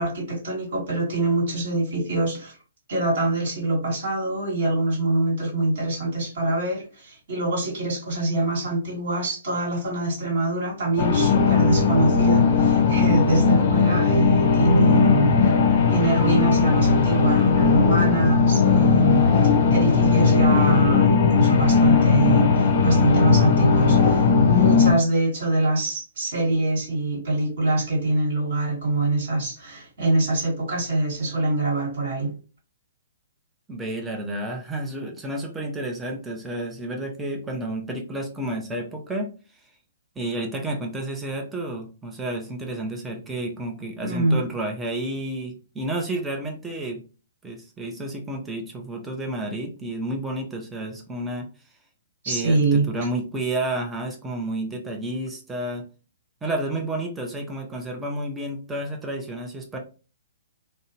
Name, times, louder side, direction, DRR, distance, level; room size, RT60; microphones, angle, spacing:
voice 1, 0.0-2.5 2.9-15.5 15.9-32.3 44.0-44.5 52.2-52.9, right 2 dB, 55° right, 1.2 m, -24 dB
sound 1, 11.0-24.9, left 5 dB, 45° left, 0.6 m, -18 dB
voice 2, 33.7-39.3 40.2-47.0 47.4-51.5 52.3-55.9 56.4-59.8, right 1 dB, 10° right, 0.6 m, -31 dB
2.7 x 2.1 x 2.7 m
figure-of-eight pair, 125°, 0 cm